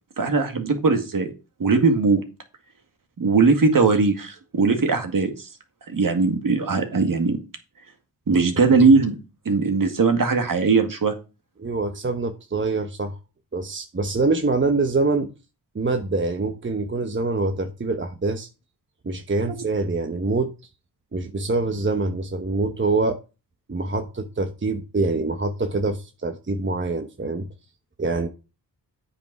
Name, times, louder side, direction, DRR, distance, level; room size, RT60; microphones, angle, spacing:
voice 1, 0.2-1.3 1.6-2.2 3.2-5.5 5.9-7.4 8.3-9.2 9.5-11.1, right 4 dB, 50° right, 2.0 m, -19 dB
voice 2, 11.6-13.2 13.5-15.3 15.7-18.5 19.0-20.5 21.1-23.2 23.7-27.5 28.0-28.3, right 3 dB, 30° right, 1.0 m, -25 dB
8.7 x 5.6 x 4.7 m
cardioid pair, 65°, 41 cm